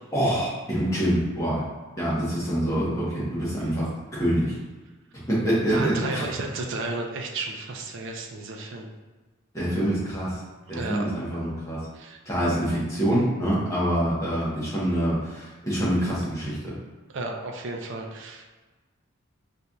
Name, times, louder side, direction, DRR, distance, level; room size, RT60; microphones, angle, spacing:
voice 1, 0.1-1.6 2.0-4.6 5.3-6.3 9.5-10.4 10.7-11.9 12.3-16.7, equal, 15° left, -8 dB, 0.9 m, -25 dB
voice 2, 5.7-8.9 10.7-11.1 11.9-12.2 17.1-18.4, right 2 dB, 60° right, 2 dB, 0.4 m, -33 dB
4.2 x 2.6 x 2.3 m, 1.3 s
head